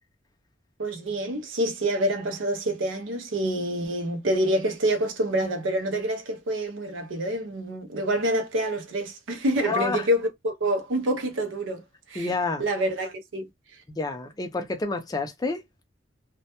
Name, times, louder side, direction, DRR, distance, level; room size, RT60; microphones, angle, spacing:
voice 1, 0.8-12.3 12.6-13.5, right 1 dB, 80° right, 0.6 m, -27 dB
voice 2, 9.7-10.0 12.2-12.6 13.9-15.6, left 3 dB, 20° left, 0.4 m, -28 dB
2.1 x 2.1 x 2.8 m
head